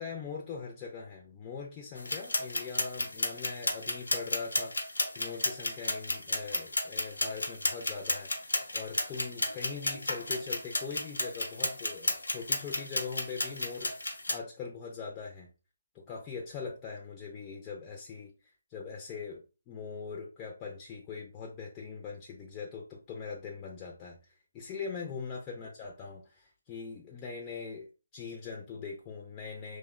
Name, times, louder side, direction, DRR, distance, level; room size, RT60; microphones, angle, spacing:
voice 1, 0.0-4.8 5.2-15.5 15.9-18.3 18.7-27.9 28.1-29.8, left 5 dB, 20° left, -1 dB, 0.4 m, -41 dB
sound 1, 2.0-14.4, left 2 dB, 85° left, 0.6 m, -33 dB
2.9 x 2.0 x 2.3 m, 0.31 s
figure-of-eight pair, 145°, 0 cm